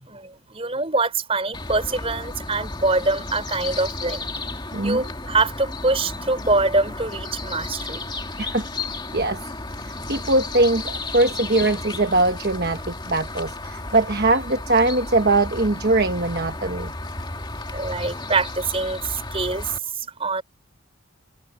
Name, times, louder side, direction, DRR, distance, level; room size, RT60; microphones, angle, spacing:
voice 1, 0.0-4.3 4.8-8.0 17.7-20.4, right 3 dB, 25° right, 4.8 m, -24 dB
sound 1, 1.5-19.8, left 2 dB, 20° left, 2.4 m, -33 dB
voice 2, 4.7-5.0 8.4-8.7 9.1-9.4 9.8-16.9, right 2 dB, 45° right, 1.2 m, -21 dB
head